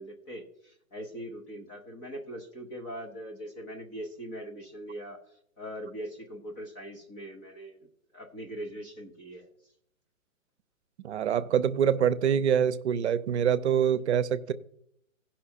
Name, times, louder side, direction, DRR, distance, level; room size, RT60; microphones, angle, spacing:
voice 1, 0.0-5.2 5.6-7.9 8.1-9.5, equal, 10° left, 0.4 m, -41 dB
voice 2, 11.0-14.5, right 8 dB, 55° right, 0.7 m, -25 dB
16.5 x 5.7 x 4.3 m
figure-of-eight pair, 125°, 41 cm